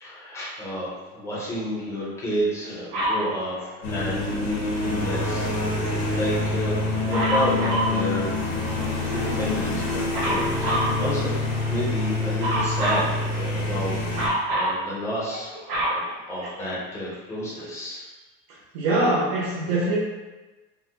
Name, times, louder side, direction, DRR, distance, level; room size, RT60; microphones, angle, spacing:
voice 1, 0.0-5.8 6.1-6.8 7.1-8.3 9.1-11.4 11.7-18.1, equal, 10° left, -7 dB, 0.5 m, -31 dB
Dog, 2.9-3.3 7.1-8.0 10.1-11.0 12.4-13.1 14.1-14.8 15.3-16.8 17.6-17.7, right 1 dB, 40° right, 0.8 m, -25 dB
sound 1, 3.8-14.3, left 2 dB, 85° left, 1.0 m, -26 dB
voice 2, 18.7-20.0, right 2 dB, 75° right, -7 dB, 0.8 m, -23 dB
3.6 x 2.1 x 2.8 m, 1.2 s
cardioid pair, 180°, 32 cm